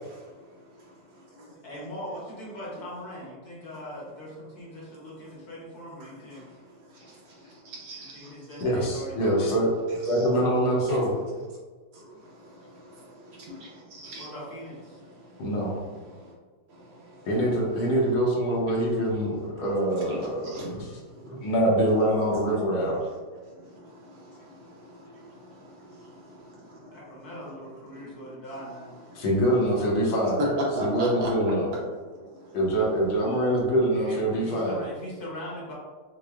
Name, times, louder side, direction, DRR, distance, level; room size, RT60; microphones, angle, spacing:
voice 1, 0.1-1.5 6.0-6.6 6.9-8.3 10.1-10.2 10.9-11.0 11.9-14.3 15.0-15.5 16.1-16.3 16.7-17.3 20.1-21.5 23.4-27.0 27.9-28.3 29.1-29.2 30.4-31.8 32.1-32.6, right 1 dB, 70° right, -3 dB, 1.4 m, -38 dB
voice 2, 1.6-6.6 8.1-9.6 14.1-15.0 26.9-28.9 33.9-35.7, equal, 55° left, -6 dB, 1.3 m, -41 dB
voice 3, 8.6-9.7 10.1-11.1 15.4-15.8 17.3-20.9 21.3-23.0 29.1-30.4 30.8-31.7 32.5-34.8, right 1 dB, 75° left, -3 dB, 1.7 m, -24 dB
6.2 x 2.1 x 2.4 m, 1.4 s
omnidirectional pair, 2.3 m